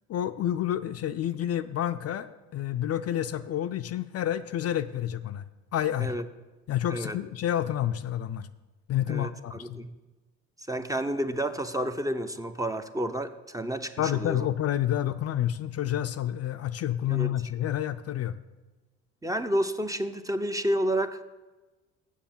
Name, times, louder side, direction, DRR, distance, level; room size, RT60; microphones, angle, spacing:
voice 1, 0.1-5.4 5.7-6.1 6.7-8.5 8.9-9.8 14.0-18.4, left 11 dB, 50° left, 10 dB, 0.5 m, -29 dB
voice 2, 9.1-9.9 10.7-14.5 17.1-17.4 19.2-21.2, right 1 dB, 10° right, 8 dB, 0.6 m, -30 dB
7.3 x 7.0 x 7.2 m, 1.2 s
supercardioid pair, 75°, 33 cm